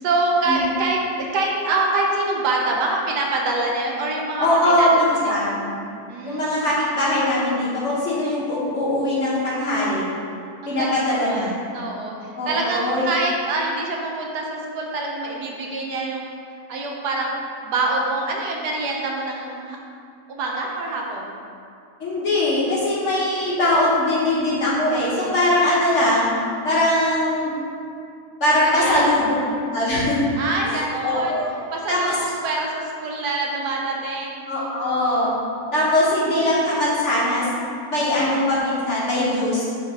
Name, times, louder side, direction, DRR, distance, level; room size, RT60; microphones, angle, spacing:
voice 1, 0.0-5.4 6.1-6.7 10.6-12.2 12.4-16.4 16.7-17.3 17.6-19.8 20.3-21.4 28.6-29.2 30.4-31.4 31.7-34.5 35.8-36.1 38.0-38.3, right 2 dB, 75° right, -1 dB, 1.4 m, -25 dB
voice 2, 4.4-5.8 6.3-10.0 10.7-11.6 12.4-13.1 22.0-26.3 26.6-27.5 28.4-29.3 29.7-30.2 30.6-31.5 31.9-32.1 34.5-35.3 35.7-37.5 37.9-39.6, left 1 dB, 50° left, -7 dB, 1.2 m, -21 dB
5.3 x 3.7 x 4.7 m, 2.5 s
omnidirectional pair, 1.8 m